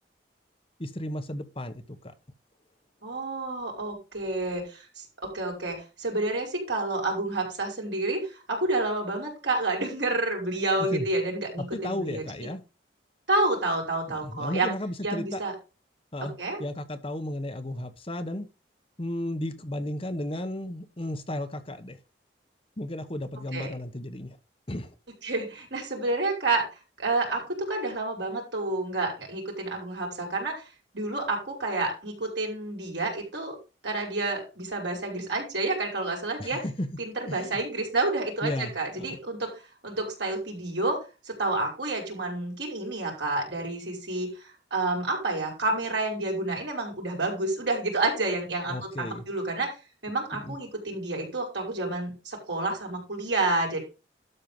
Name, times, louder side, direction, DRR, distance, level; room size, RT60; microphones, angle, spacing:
voice 1, 0.8-2.1 10.8-11.1 11.6-12.6 14.1-15.4 16.1-16.3 16.6-18.5 19.0-22.0 22.8-24.4 24.7-24.9 36.4-36.9 37.2-37.6 38.4-39.2 48.7-49.2 50.3-50.6, left 1 dB, 30° left, 8 dB, 1.0 m, -34 dB
voice 2, 3.0-12.2 13.3-14.7 15.0-15.5 16.2-16.6 23.5-23.7 25.2-26.6 27.0-30.6 30.9-33.6 33.8-36.6 37.0-41.0 41.2-49.8 50.0-53.8, right 2 dB, 75° right, 0 dB, 5.3 m, -29 dB
12.5 x 4.5 x 5.4 m, 0.31 s
head